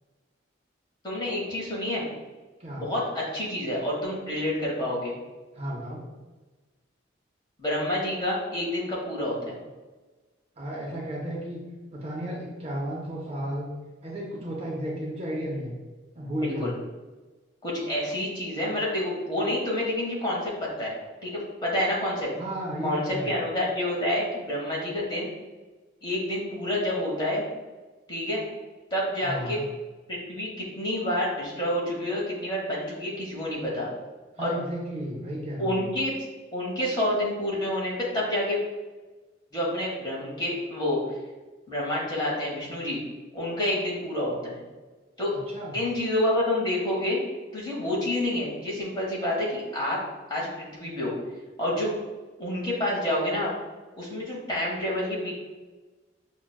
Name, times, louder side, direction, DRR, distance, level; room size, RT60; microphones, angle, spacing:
voice 1, 1.0-2.0 2.8-5.1 7.6-9.6 16.4-16.7 17.6-20.9 21.2-22.3 22.8-25.3 26.0-27.4 28.1-28.4 28.9-29.6 30.1-33.9 34.4-34.5 35.6-36.1 36.5-38.6 39.5-41.2 41.7-43.0 43.3-44.6 45.2-45.3 45.7-47.2 47.5-50.0 50.3-51.1 51.6-51.9 52.4-53.5 54.0-55.3, left 1 dB, 20° left, -5 dB, 0.9 m, -28 dB
voice 2, 5.5-6.0 10.6-11.6 11.9-13.7 14.0-15.7 16.2-16.7 22.4-23.3 29.2-29.6 34.4-35.8 45.3-45.8, equal, 30° right, -3 dB, 0.5 m, -33 dB
5.8 x 2.1 x 2.2 m, 1.2 s
head